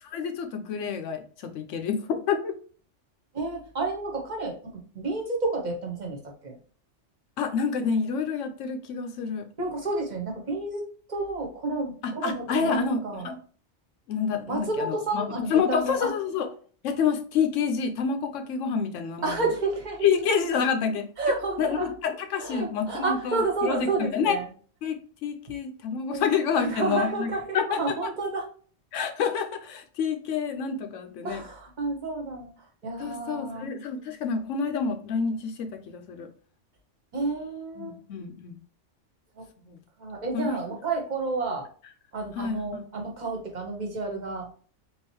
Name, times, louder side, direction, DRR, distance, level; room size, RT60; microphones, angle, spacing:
voice 1, 0.1-2.5 7.4-9.4 12.0-13.4 14.1-15.2 15.5-16.5 16.8-19.4 20.0-21.1 21.6-24.4 24.8-27.3 27.5-28.1 28.9-31.4 33.0-36.3 37.8-38.6 39.7-39.8 40.3-40.6 42.4-42.8, left 6 dB, 85° left, 6 dB, 1.0 m, -28 dB
voice 2, 3.3-6.6 9.6-10.8 11.1-13.3 14.5-16.1 19.2-20.1 21.2-21.9 22.4-24.5 26.1-26.3 26.5-28.5 31.2-33.7 37.1-38.0 39.4-39.5 40.0-41.7 42.1-44.5, right 3 dB, 40° right, 1 dB, 0.9 m, -30 dB
3.6 x 2.9 x 3.0 m, 0.43 s
omnidirectional pair, 1.2 m